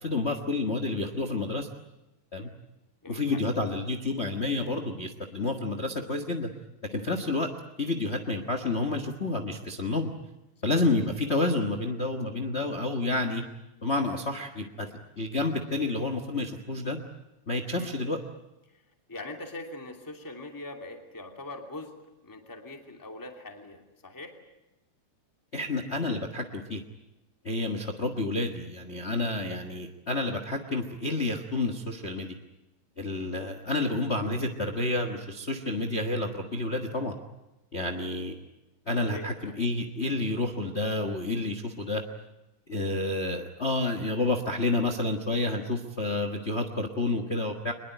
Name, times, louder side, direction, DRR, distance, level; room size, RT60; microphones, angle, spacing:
voice 1, 0.0-1.7 2.3-2.5 3.1-6.5 6.9-7.5 7.8-10.1 10.6-13.4 13.8-14.9 15.2-17.0 17.5-18.2 25.5-26.8 27.4-32.3 33.0-37.1 37.7-38.4 38.9-42.0 42.7-47.7, left 2 dB, 30° left, 6 dB, 1.3 m, -29 dB
voice 2, 3.0-3.4 17.8-17.9 18.7-18.8 19.1-21.9 22.2-24.4 39.1-39.7, left 2 dB, 5° left, 3 dB, 2.5 m, -42 dB
24.0 x 21.0 x 9.1 m, 0.96 s
omnidirectional pair, 3.3 m